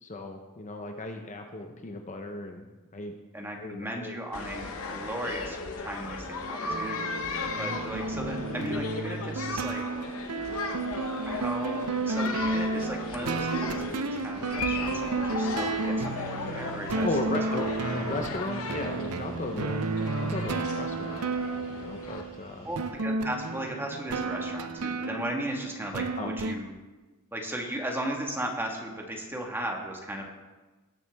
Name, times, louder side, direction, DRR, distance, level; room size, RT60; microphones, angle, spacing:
voice 1, 0.0-2.7 2.9-3.1 3.6-4.2 7.5-7.8 17.0-17.7 17.9-19.8 20.2-21.3 21.7-22.7 26.2-26.3, left 2 dB, 35° left, 4 dB, 0.8 m, -36 dB
voice 2, 3.3-7.1 7.5-9.8 11.3-17.7 22.6-26.7 27.3-30.3, right 1 dB, 10° right, 1 dB, 1.5 m, -36 dB
sound 1, 4.3-22.2, left 4 dB, 65° left, 1.0 m, -36 dB
sound 2, 6.7-26.6, right 3 dB, 85° right, 0.7 m, -32 dB
sound 3, 6.8-22.9, equal, 60° right, 3.4 m, -52 dB
18.5 x 7.0 x 3.5 m, 1.2 s
head